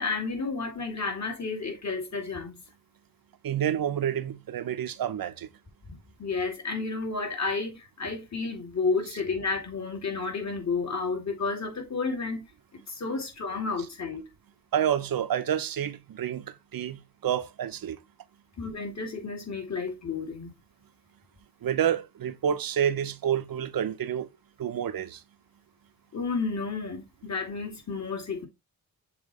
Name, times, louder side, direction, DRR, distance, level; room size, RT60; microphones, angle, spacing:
voice 1, 0.0-2.6 5.9-12.5 12.9-14.3 18.6-20.5 26.1-28.5, left 4 dB, 50° left, 2.7 m, -31 dB
voice 2, 3.4-5.5 14.7-18.0 21.6-24.3 24.6-25.2, right 9 dB, 80° right, 0.8 m, -29 dB
7.0 x 3.0 x 4.7 m
cardioid pair, 65°, 34 cm